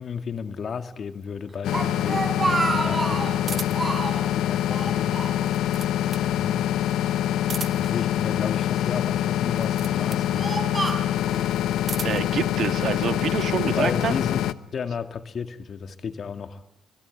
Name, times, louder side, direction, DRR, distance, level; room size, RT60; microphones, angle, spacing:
voice 1, 0.0-3.9 4.4-5.2 6.2-6.7 7.7-10.6 13.6-14.4 14.7-16.6, left 6 dB, 50° left, 8 dB, 2.1 m, -33 dB
Speech, 1.5-3.4 3.7-4.3 4.7-5.8 6.1-6.2 7.0-8.0 8.7-9.2 9.8-11.5, right 2 dB, 20° right, 5.4 m, -29 dB
sound 1, 1.6-14.5, left 11 dB, 85° left, 0.9 m, -25 dB
sound 2, 3.5-4.0 5.3-6.3 7.4-8.0 9.5-10.3 11.5-12.3, right 6 dB, 45° right, 1.3 m, -37 dB
voice 2, 12.0-14.1, right 8 dB, 65° right, 9 dB, 1.9 m, -27 dB
27.0 x 21.5 x 10.0 m, 0.86 s
cardioid pair, 90°, 0 cm